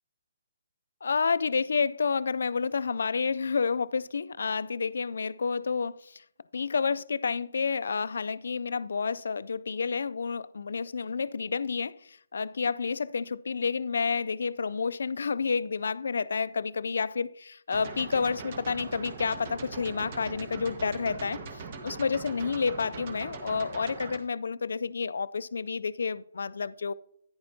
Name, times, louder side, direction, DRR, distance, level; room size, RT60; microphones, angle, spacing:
voice 1, 1.0-6.2 6.5-26.9, left 5 dB, 75° left, 0.4 m, -30 dB
sound 1, 17.7-24.2, right 4 dB, 40° right, 1.4 m, -41 dB
10.5 x 10.0 x 2.8 m
hypercardioid pair, 155°, 0 cm